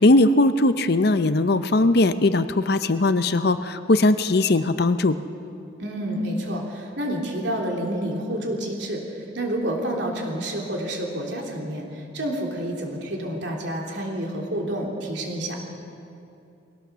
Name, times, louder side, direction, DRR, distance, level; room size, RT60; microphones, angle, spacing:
voice 1, 0.0-5.2, left 2 dB, 55° left, 12 dB, 0.7 m, -19 dB
voice 2, 5.8-9.0 9.3-15.6, right 1 dB, 65° right, 0 dB, 3.3 m, -29 dB
21.5 x 17.5 x 7.0 m, 2.6 s
head